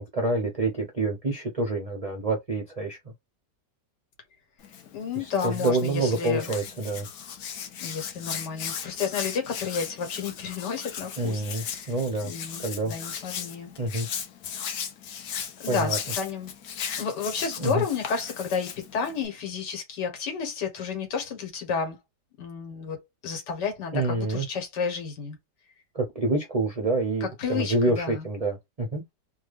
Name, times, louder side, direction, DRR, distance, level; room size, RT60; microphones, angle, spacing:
voice 1, 0.0-3.1 5.2-7.1 11.2-12.3 12.6-12.9 13.8-14.1 15.7-16.0 17.6-17.8 23.9-24.5 25.9-29.0, right 2 dB, 55° right, 0.4 m, -27 dB
Hands, 4.6-19.3, left 8 dB, 70° left, 1.1 m, -37 dB
voice 2, 4.9-6.5 7.8-11.9 12.2-13.7 15.6-16.5 16.8-22.0 22.4-23.0 23.2-25.4 27.2-28.3, left 6 dB, 90° left, 1.9 m, -31 dB
3.4 x 2.3 x 3.2 m
omnidirectional pair, 1.8 m